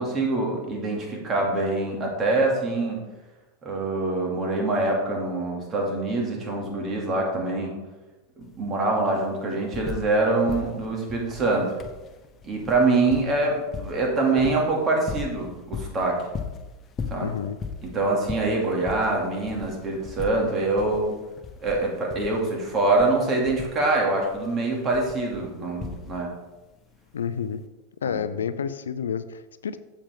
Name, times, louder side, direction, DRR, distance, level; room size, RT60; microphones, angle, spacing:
voice 1, 0.0-3.0 3.6-7.8 8.4-11.8 12.4-16.2 17.1-17.3 17.8-21.2 21.6-26.3 28.0-28.2, right 2 dB, 30° right, -1 dB, 2.4 m, -25 dB
sound 1, 8.4-8.5 8.8-10.2 10.5-26.4 27.5-27.6, left 6 dB, 30° left, 0.9 m, -38 dB
voice 2, 17.2-17.6 27.1-27.6 28.0-29.8, left 7 dB, 85° left, 13 dB, 0.4 m, -29 dB
7.3 x 7.3 x 3.7 m, 1.1 s
hypercardioid pair, 95°, 0 cm